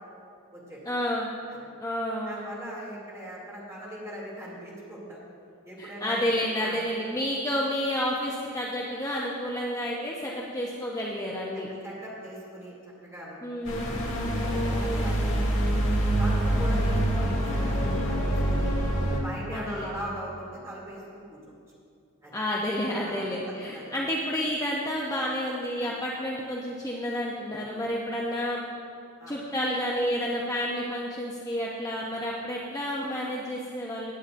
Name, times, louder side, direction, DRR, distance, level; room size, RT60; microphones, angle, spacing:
voice 1, 0.9-1.3 1.8-2.5 5.8-11.7 13.4-13.9 14.7-15.2 16.6-16.8 19.5-19.9 22.3-28.6 29.3-34.1, equal, 15° left, -4 dB, 0.7 m, -30 dB
voice 2, 2.2-5.2 5.6-6.2 6.6-6.8 11.5-12.7 13.0-13.4 13.8-14.0 14.4-15.8 16.2-18.7 19.1-21.4 22.2-22.4 23.0-23.9 29.2-29.3, equal, 15° right, -6 dB, 2.6 m, -40 dB
sound 1, 13.6-19.2, right 1 dB, 65° left, 1.7 m, -25 dB
17.0 x 8.8 x 2.6 m, 2.5 s
head